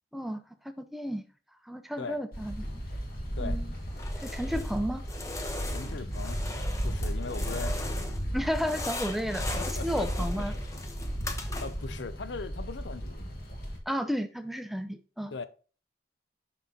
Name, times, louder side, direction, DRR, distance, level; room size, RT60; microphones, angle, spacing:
voice 1, 0.1-1.2 1.6-2.8 3.4-3.7 4.2-5.0 8.3-10.5 13.9-15.5, equal, ahead, 0.5 m, -33 dB
sound 1, 2.3-13.8, equal, 55° left, 1.8 m, -34 dB
sound 2, 3.9-4.8 5.1-8.2 8.5-11.9, left 2 dB, 15° left, 0.9 m, -39 dB
voice 2, 5.7-6.4 6.8-7.8 9.6-10.1 10.3-10.4 11.6-13.3 15.3-15.5, left 4 dB, 80° left, 0.6 m, -39 dB
5.9 x 5.7 x 3.9 m
head